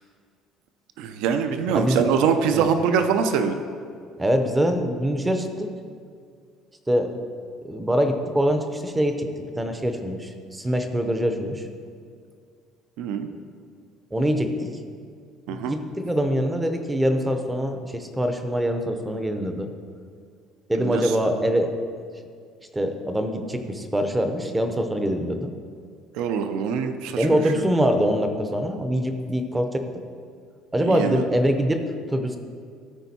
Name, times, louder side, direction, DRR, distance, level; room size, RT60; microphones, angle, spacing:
voice 1, 1.0-3.6 13.0-13.3 15.5-15.8 20.8-21.1 26.1-27.6 30.8-31.2, right 6 dB, 70° right, 8 dB, 0.5 m, -24 dB
voice 2, 1.7-2.0 2.5-2.7 4.2-5.7 6.9-7.1 7.6-11.6 14.1-14.7 15.5-19.7 20.7-21.7 22.7-25.5 27.2-29.8 30.7-31.8 32.1-32.4, equal, 10° right, 6 dB, 0.5 m, -24 dB
13.5 x 4.5 x 4.2 m, 2.2 s
cardioid pair, 175°, 0 cm